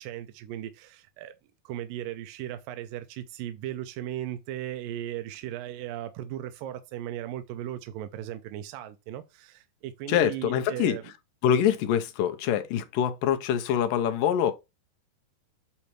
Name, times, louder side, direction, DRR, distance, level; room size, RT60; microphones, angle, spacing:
voice 1, 0.0-1.3 1.6-11.0, right 12 dB, 80° right, 2.2 m, -37 dB
voice 2, 10.1-11.0 11.4-14.5, left 9 dB, 75° left, 2.4 m, -25 dB
8.4 x 3.1 x 4.5 m
omnidirectional pair, 4.1 m